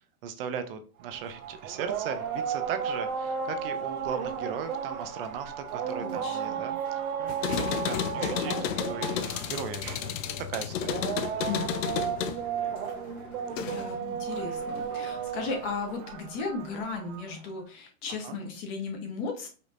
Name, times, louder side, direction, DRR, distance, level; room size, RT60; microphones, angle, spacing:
voice 1, 0.2-8.5 8.9-11.0 18.2-18.4, right 7 dB, 40° right, 9 dB, 0.6 m, -38 dB
sound 1, 1.0-17.4, right 7 dB, 75° right, 1.0 m, -34 dB
voice 2, 6.0-6.6 8.1-8.5 11.5-11.8 13.6-19.5, left 4 dB, 35° left, 2 dB, 1.1 m, -36 dB
sound 2, 7.3-14.0 14.4-15.2, left 9 dB, 60° left, 0.6 m, -33 dB
5.1 x 2.9 x 2.5 m, 0.37 s
supercardioid pair, 165°, 43 cm